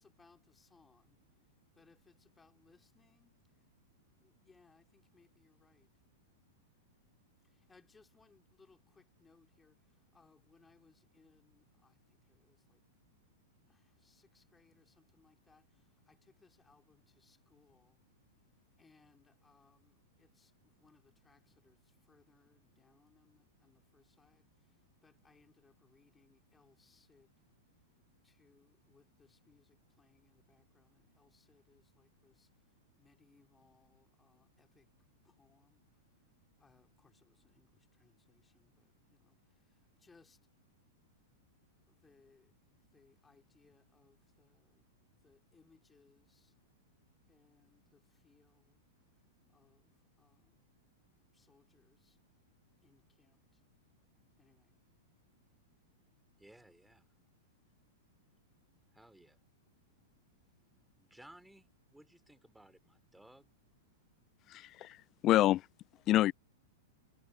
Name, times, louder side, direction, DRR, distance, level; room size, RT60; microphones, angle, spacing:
voice 1, 0.0-3.7 4.2-6.0 7.4-12.8 13.7-18.0 18.8-27.4 28.2-34.9 35.2-36.0 36.6-40.4 41.9-44.8 45.2-46.5 47.3-48.8 49.5-50.6 51.3-52.2 52.8-53.6 54.4-54.7, left 4 dB, 15° left, 4.3 m, -69 dB
voice 2, 56.4-57.1 58.9-59.4 61.0-63.5, right 1 dB, 5° right, 3.6 m, -59 dB
voice 3, 64.5-65.7 66.1-66.3, left 14 dB, 35° left, 0.3 m, -28 dB
hypercardioid pair, 105°, 0 cm